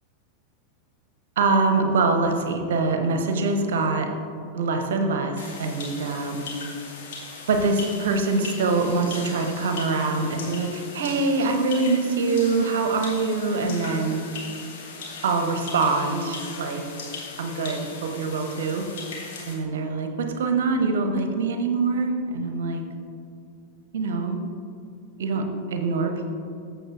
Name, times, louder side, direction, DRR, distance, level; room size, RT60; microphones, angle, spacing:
voice 1, 1.4-4.1 4.5-6.5 7.5-14.2 15.2-16.8 17.4-18.8 19.5-22.8 23.9-24.4 25.2-26.2, right 3 dB, 60° right, 5 dB, 0.9 m, -24 dB
sound 1, 5.4-19.6, left 4 dB, 55° left, 1.5 m, -39 dB
14.0 x 6.7 x 2.6 m, 2.4 s
figure-of-eight pair, 90°, 0 cm